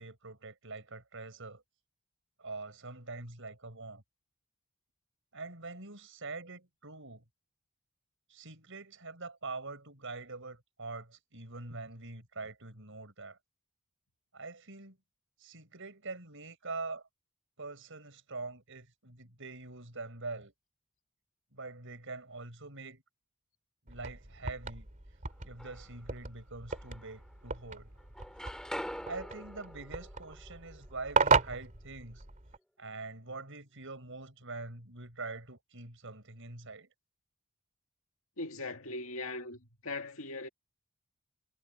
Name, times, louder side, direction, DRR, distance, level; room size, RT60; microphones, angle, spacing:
voice 1, 0.0-1.6 2.4-4.0 5.3-7.2 8.3-13.4 14.3-15.0 15.4-17.0 17.6-20.5 21.5-23.0 23.9-24.9 25.4-27.9 28.4-28.6 29.1-32.2 32.8-36.9, right 3 dB, 65° right, 7.6 m, -44 dB
sound 1, 23.9-32.6, right 5 dB, 40° right, 2.6 m, -35 dB
sound 2, 25.3-26.1 26.7-27.7 28.0-31.9, equal, 5° left, 4.6 m, -45 dB
voice 2, 38.4-40.5, left 2 dB, 70° left, 2.2 m, -40 dB
head